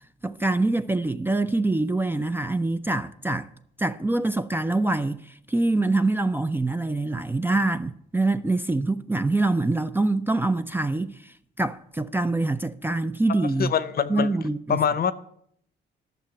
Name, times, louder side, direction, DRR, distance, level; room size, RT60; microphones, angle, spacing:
voice 1, 0.2-3.5 3.8-13.7 14.1-14.8, right 2 dB, 10° right, 0.4 m, -25 dB
voice 2, 13.4-14.3 14.7-15.1, left 8 dB, 50° left, 0.8 m, -24 dB
11.5 x 6.6 x 7.6 m
cardioid pair, 90°, 20 cm